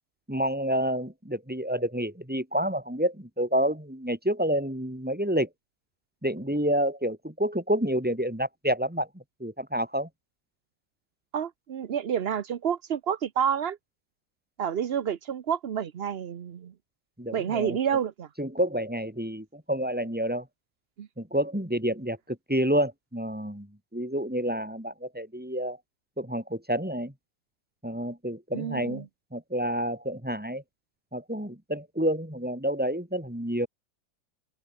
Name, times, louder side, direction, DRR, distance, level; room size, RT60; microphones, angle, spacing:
voice 1, 0.3-5.5 6.2-10.1 17.2-17.8 18.4-20.5 21.2-25.8 26.2-27.1 27.8-30.6 31.1-33.7, equal, 5° right, 4.1 m, -29 dB
voice 2, 11.3-13.8 14.6-16.7 17.3-18.3 21.0-21.1 28.5-29.0, right 8 dB, 75° right, 0.5 m, -29 dB
open air
omnidirectional pair, 2.1 m